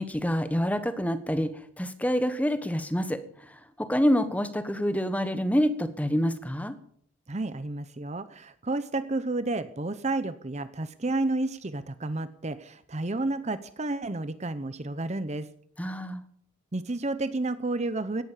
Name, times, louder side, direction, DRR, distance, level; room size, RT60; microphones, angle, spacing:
voice 1, 0.0-6.8 15.8-16.2, equal, 5° left, 11 dB, 1.2 m, -27 dB
voice 2, 7.3-15.5 16.7-18.2, right 2 dB, 30° right, 13 dB, 0.7 m, -31 dB
17.0 x 11.5 x 7.4 m, 0.63 s
head